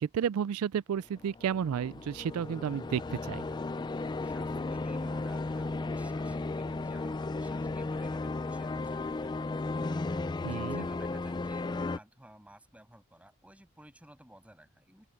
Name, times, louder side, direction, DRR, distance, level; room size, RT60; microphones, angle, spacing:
voice 1, 0.0-3.4 10.4-10.8, right 8 dB, 85° right, 0.3 m, -32 dB
sound 1, 1.1-12.0, left 3 dB, 20° left, 0.3 m, -35 dB
voice 2, 4.2-9.5 10.0-15.1, right 1 dB, 5° right, 7.7 m, -55 dB
open air
head